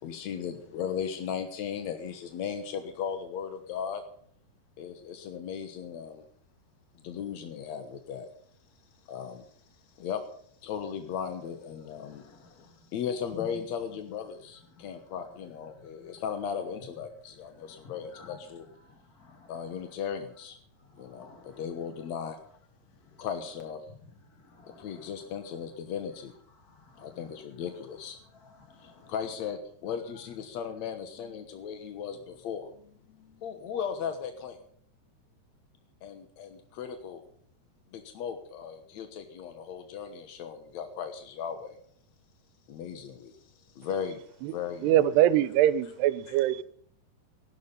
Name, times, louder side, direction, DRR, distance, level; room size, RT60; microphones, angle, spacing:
voice 1, 0.0-4.0 4.8-6.2 7.0-8.3 9.1-9.5 10.0-10.2 10.6-18.7 19.5-20.6 21.0-22.4 23.2-23.9 24.8-26.3 27.0-28.2 28.8-32.8 33.1-34.6 36.0-37.2 37.9-41.8 42.7-43.3 43.7-45.1 46.3-46.4, left 7 dB, 70° left, 1.7 m, -37 dB
voice 2, 12.0-12.9 13.3-13.4 14.7-14.9 15.8-16.2 17.6-18.4 18.8-19.8 20.9-21.6 23.1-23.2 24.3-25.1 26.7-27.2 28.4-29.1, left 4 dB, 40° left, 1.4 m, -53 dB
voice 3, 44.8-46.6, right 12 dB, 80° right, 2.8 m, -23 dB
16.0 x 12.0 x 5.6 m
omnidirectional pair, 4.8 m